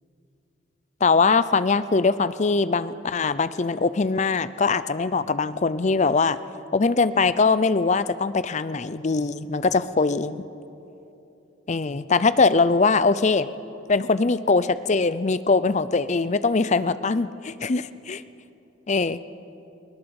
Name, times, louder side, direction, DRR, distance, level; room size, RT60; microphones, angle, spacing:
voice 1, 1.0-6.4 6.7-10.4 11.7-13.5 13.9-18.2 18.9-19.2, left 4 dB, 35° left, 15 dB, 0.5 m, -22 dB
20.5 x 19.0 x 7.1 m, 2.9 s
head